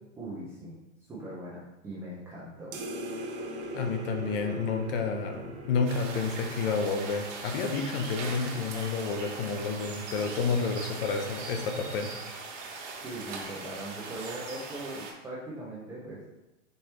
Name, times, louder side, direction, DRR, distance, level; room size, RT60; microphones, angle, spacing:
voice 1, 0.2-2.8 13.0-16.4, right 1 dB, 5° right, -9 dB, 0.4 m, -40 dB
sound 1, 2.7-7.6, right 2 dB, 40° right, 1.1 m, -40 dB
voice 2, 3.7-12.1, left 5 dB, 45° left, 5 dB, 0.7 m, -30 dB
sound 2, 5.8-15.1, right 4 dB, 60° right, 1.3 m, -40 dB
4.4 x 3.0 x 3.3 m, 0.99 s
hypercardioid pair, 135°, 40 cm